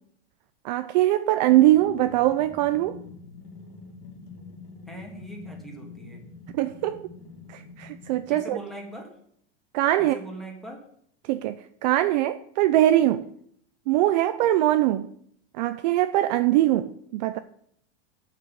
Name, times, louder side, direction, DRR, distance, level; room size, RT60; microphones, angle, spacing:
voice 1, 0.6-3.0 6.5-7.0 7.5-8.6 9.7-10.2 11.3-11.6 11.8-13.2 13.9-15.1 15.6-17.4, right 14 dB, 40° right, 11 dB, 0.5 m, -22 dB
sound 1, 1.7-8.5, left 4 dB, 50° left, 2.4 m, -45 dB
voice 2, 4.9-6.2 8.3-9.1 10.0-10.8, right 1 dB, ahead, 0 dB, 1.9 m, -40 dB
9.2 x 6.1 x 8.5 m, 0.68 s
supercardioid pair, 170°, 33 cm